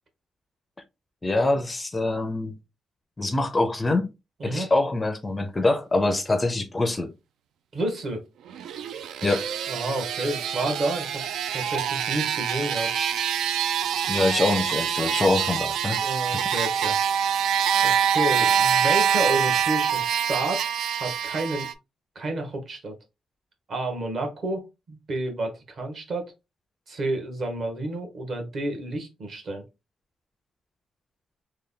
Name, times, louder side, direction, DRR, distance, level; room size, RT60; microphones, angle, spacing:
voice 1, 1.2-2.5 3.2-4.1 4.4-7.1 9.2-9.5 14.1-16.0, left 2 dB, 20° left, 0.4 m, -24 dB
voice 2, 7.7-8.2 9.7-12.9 16.0-17.0 17.8-20.7 21.0-21.7 22.1-22.9 23.7-26.3 26.9-29.6, right 2 dB, 50° right, 1.2 m, -30 dB
sound 1, 8.5-21.7, right 8 dB, 85° right, 0.3 m, -25 dB
3.3 x 2.2 x 3.6 m
cardioid pair, 135°, 0 cm